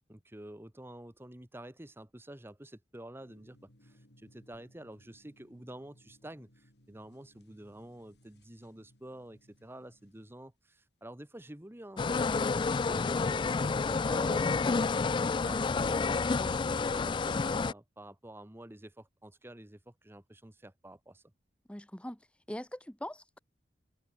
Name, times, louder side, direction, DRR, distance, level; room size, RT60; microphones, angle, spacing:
voice 1, 0.1-14.6 15.3-21.2, right 1 dB, 15° right, 1.2 m, -49 dB
sound 1, 3.2-10.3, equal, 75° left, 7.1 m, -64 dB
sound 2, 12.0-17.7, left 4 dB, 30° left, 0.3 m, -29 dB
voice 2, 21.7-22.2 22.5-23.4, left 1 dB, 5° left, 1.2 m, -41 dB
head